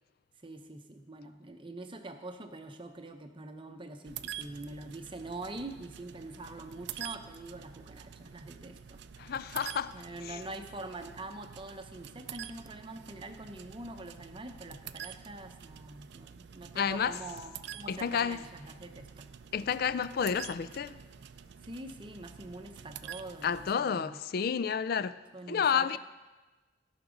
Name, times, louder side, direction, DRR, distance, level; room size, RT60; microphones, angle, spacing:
voice 1, 0.4-9.0 9.9-19.3 21.6-24.2 25.3-26.0, right 2 dB, 25° right, 0.7 m, -44 dB
sound 1, 4.0-23.7, right 9 dB, 55° right, 0.4 m, -47 dB
voice 2, 9.2-9.9 10.2-10.4 16.8-17.2 17.9-18.4 19.5-21.0 23.4-25.2 25.5-26.0, left 7 dB, 45° left, 0.3 m, -30 dB
17.0 x 5.9 x 5.1 m
head